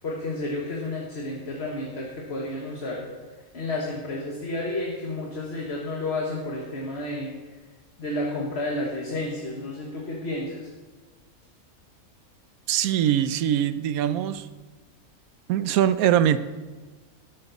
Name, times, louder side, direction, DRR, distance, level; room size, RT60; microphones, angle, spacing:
voice 1, 0.0-3.0 3.5-7.3 8.0-10.7, left 2 dB, 50° left, -2 dB, 1.8 m, -31 dB
voice 2, 12.7-14.5 15.5-16.4, right 10 dB, 85° right, 14 dB, 1.1 m, -22 dB
12.5 x 12.5 x 4.1 m, 1.3 s
omnidirectional pair, 1.5 m